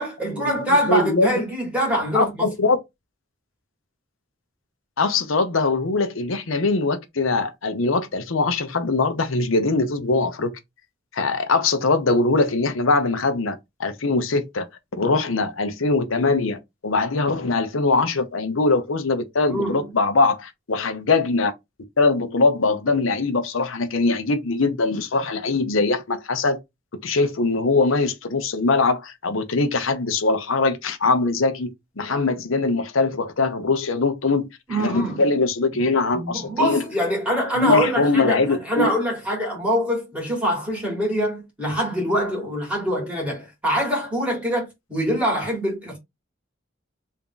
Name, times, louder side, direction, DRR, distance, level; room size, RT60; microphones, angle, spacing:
voice 1, 0.0-2.5 19.5-19.9 34.7-35.2 36.1-46.0, equal, 5° right, 2.0 m, -24 dB
voice 2, 0.9-1.4 2.1-2.8 5.0-10.5 11.1-14.7 15.0-21.5 22.0-26.6 26.9-34.5 34.8-36.8 37.6-38.9, left 3 dB, 85° left, 0.8 m, -22 dB
3.5 x 2.7 x 3.8 m
head